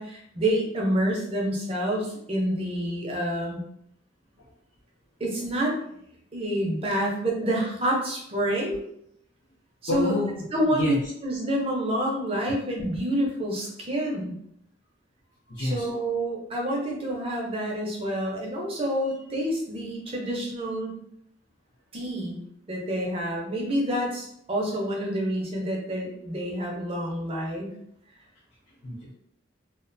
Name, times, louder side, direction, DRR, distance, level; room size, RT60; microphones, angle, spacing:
voice 1, 0.0-3.6 5.2-5.8 6.3-8.8 9.9-10.1 10.5-11.0 11.2-14.3 15.6-20.9 21.9-22.4 22.7-27.7, right 1 dB, 30° right, -1 dB, 0.5 m, -28 dB
voice 2, 9.9-11.0 15.5-15.9 28.8-29.1, left 1 dB, 65° left, -6 dB, 0.6 m, -29 dB
2.3 x 2.1 x 2.5 m, 0.72 s
head